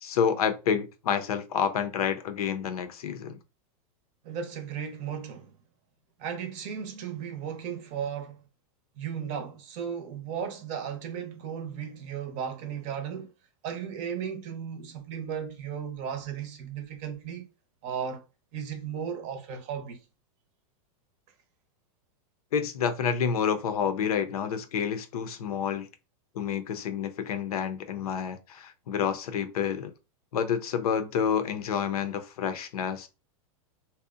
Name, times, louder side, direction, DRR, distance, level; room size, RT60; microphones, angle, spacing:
voice 1, 0.0-3.4 22.5-25.9 26.3-29.9 30.3-33.1, left 7 dB, 90° left, 0.5 m, -29 dB
voice 2, 4.2-5.6 6.2-8.4 9.0-13.3 13.6-17.5 17.8-18.2 18.5-20.0, right 8 dB, 40° right, 0.6 m, -35 dB
2.7 x 2.0 x 2.4 m
supercardioid pair, 140°, 19 cm